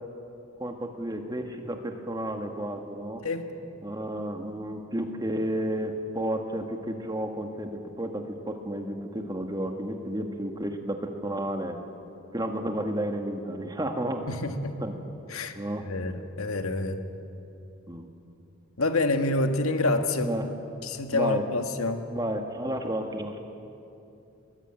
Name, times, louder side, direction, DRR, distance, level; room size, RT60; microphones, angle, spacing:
voice 1, 0.6-3.2 3.8-11.8 12.3-14.3 14.8-15.0 15.5-15.9 17.9-18.1 20.2-20.5 21.1-21.4 22.1-23.4, right 1 dB, 20° right, 4 dB, 1.7 m, -32 dB
voice 2, 14.3-14.7 15.3-15.5 15.8-17.0 18.8-20.3 20.8-22.0, left 2 dB, 80° left, 6 dB, 1.7 m, -27 dB
22.0 x 17.0 x 8.8 m, 2.7 s
head